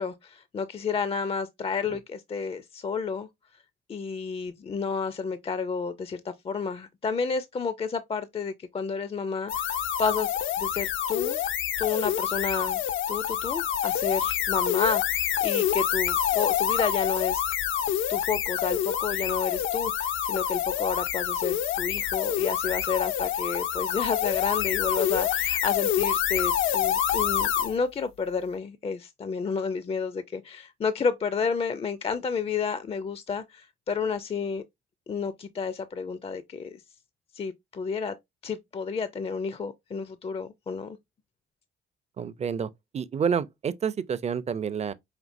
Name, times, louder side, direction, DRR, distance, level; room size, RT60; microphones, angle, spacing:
voice 1, 0.0-3.3 3.9-11.4 11.8-12.8 13.1-17.4 18.1-34.6 35.1-36.8 37.3-38.1 38.4-41.0, left 5 dB, 30° left, 0.4 m, -31 dB
sound 1, 9.5-27.7, left 10 dB, 80° left, 0.6 m, -27 dB
voice 2, 42.2-42.7 42.9-44.9, right 7 dB, 35° right, 0.5 m, -28 dB
5.1 x 2.8 x 2.6 m
cardioid pair, 90°, 20 cm